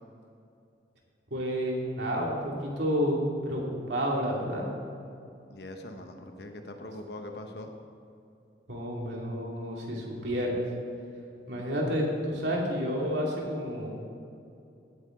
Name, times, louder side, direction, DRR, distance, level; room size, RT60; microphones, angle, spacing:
voice 1, 1.3-4.7 8.7-10.6 11.5-13.9, equal, 70° right, -2 dB, 2.5 m, -30 dB
voice 2, 5.5-7.7, left 1 dB, 60° left, 5 dB, 1.1 m, -42 dB
16.5 x 9.0 x 3.8 m, 2.6 s
head